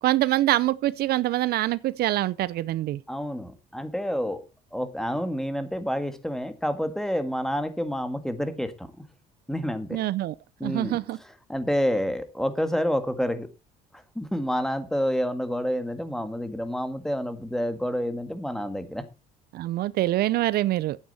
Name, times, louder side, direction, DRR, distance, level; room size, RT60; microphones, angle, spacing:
voice 1, 0.0-3.0 9.9-10.3 10.6-11.2 19.5-21.0, right 15 dB, 70° right, 0.6 m, -25 dB
voice 2, 3.1-4.4 4.7-9.0 9.5-10.0 10.6-11.0 11.2-13.5 13.9-19.0, equal, 5° left, 1.7 m, -28 dB
11.5 x 8.9 x 4.1 m
cardioid pair, 110°, 17 cm